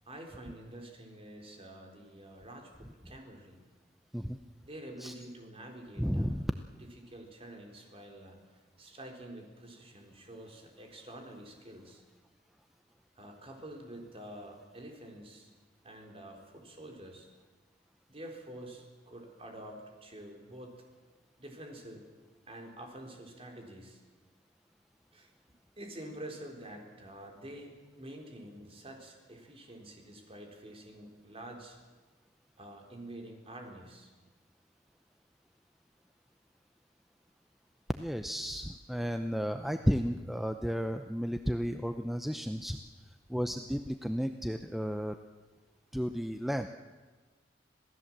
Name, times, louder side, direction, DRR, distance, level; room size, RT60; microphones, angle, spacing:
voice 1, 0.1-3.6 4.7-6.4 6.7-8.4 8.8-12.0 13.2-15.5 15.8-17.3 18.1-20.8 21.4-22.1 22.5-24.0 25.1-25.3 25.8-31.8 32.6-34.1, right 1 dB, 30° right, 2 dB, 4.1 m, -48 dB
voice 2, 6.0-6.5 37.9-42.8 43.3-45.2 45.9-46.7, equal, ahead, 7 dB, 0.6 m, -33 dB
26.5 x 17.5 x 7.5 m, 1.3 s
head